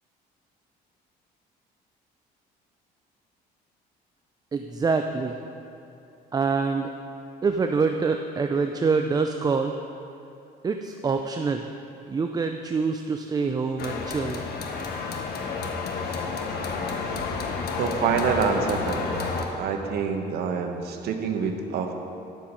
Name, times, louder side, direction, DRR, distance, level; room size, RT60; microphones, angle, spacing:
voice 1, 4.5-5.4 6.3-6.9 7.4-9.8 10.6-11.6 12.1-14.5, right 4 dB, 25° right, 5 dB, 0.4 m, -25 dB
sound 1, 13.8-19.5, left 4 dB, 70° left, 1.2 m, -30 dB
voice 2, 17.8-19.2 19.6-21.9, right 6 dB, 70° right, 4 dB, 1.0 m, -26 dB
10.5 x 7.5 x 5.3 m, 2.8 s
cardioid pair, 110°, 17 cm